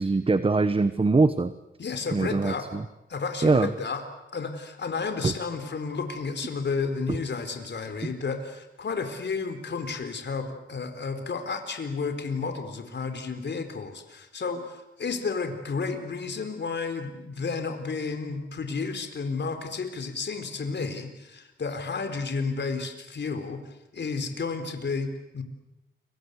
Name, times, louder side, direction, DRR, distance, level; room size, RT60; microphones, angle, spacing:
voice 1, 0.0-1.5 2.1-2.8 3.4-3.7 5.2-5.3, right 3 dB, 25° right, 13 dB, 1.1 m, -22 dB
voice 2, 1.8-2.7 3.1-4.0 4.3-23.6 23.9-25.4, left 4 dB, 60° left, 7 dB, 4.1 m, -32 dB
29.5 x 24.0 x 8.2 m, 0.92 s
cardioid pair, 85°, 20 cm